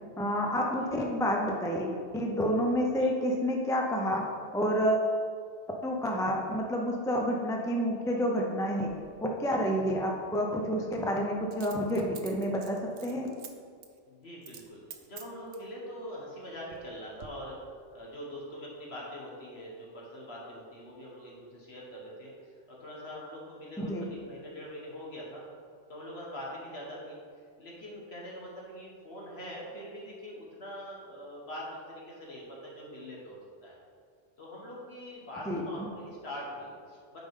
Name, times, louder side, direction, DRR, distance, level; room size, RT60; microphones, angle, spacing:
voice 1, 0.2-5.1 5.8-8.9 9.2-13.3 23.8-24.1 35.5-35.9, equal, 5° left, 0 dB, 0.4 m, -29 dB
Coin (dropping), 8.9-9.0 11.5-13.5 13.8-14.0 14.4-14.7 14.9-15.7 16.3-16.9 17.2-17.3, right 8 dB, 90° right, 1.0 m, -48 dB
voice 2, 14.1-17.6 17.9-25.4 25.9-27.2 27.6-33.8 34.4-37.2, equal, 60° left, -4 dB, 1.8 m, -43 dB
8.5 x 5.2 x 3.7 m, 2.1 s
omnidirectional pair, 1.2 m